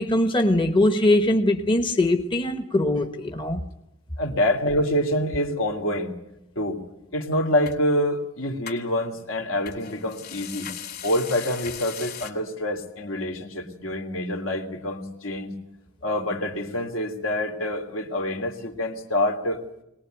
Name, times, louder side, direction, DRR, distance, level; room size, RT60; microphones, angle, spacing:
voice 1, 0.0-3.6, left 1 dB, 25° left, 1.1 m, -21 dB
voice 2, 4.2-6.1 6.6-6.8 7.1-10.7 11.0-15.5 16.0-19.6, left 1 dB, 75° left, 2.8 m, -26 dB
sound 1, 7.7-7.8 8.7-8.8 9.7-12.3, left 8 dB, 50° left, 3.2 m, -38 dB
22.5 x 19.5 x 9.2 m
head